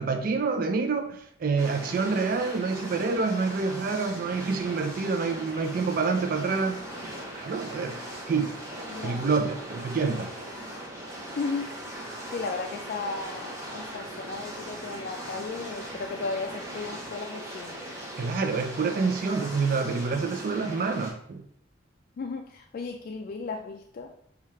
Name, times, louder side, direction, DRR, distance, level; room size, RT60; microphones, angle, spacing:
voice 1, 0.0-6.8 7.3-8.0 8.3-8.6 9.0-10.3 18.2-21.4, right 4 dB, 50° right, 0.4 m, -27 dB
sound 1, 1.6-21.1, right 1 dB, 15° right, 0.9 m, -39 dB
voice 2, 8.9-9.3 11.4-11.7 12.3-17.8 22.2-24.1, left 4 dB, 50° left, 0.3 m, -35 dB
5.5 x 2.4 x 3.1 m
head